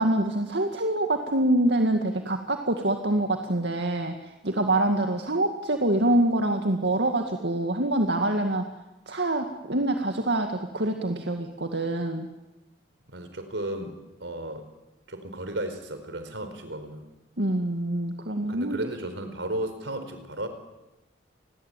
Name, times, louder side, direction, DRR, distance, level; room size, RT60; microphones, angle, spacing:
voice 1, 0.0-8.7 9.1-12.3 17.4-18.8, right 1 dB, 75° right, 5 dB, 2.2 m, -25 dB
voice 2, 13.1-14.7 15.1-17.1 18.4-20.5, right 1 dB, 90° right, 9 dB, 4.6 m, -34 dB
29.5 x 21.5 x 9.2 m, 1.0 s
head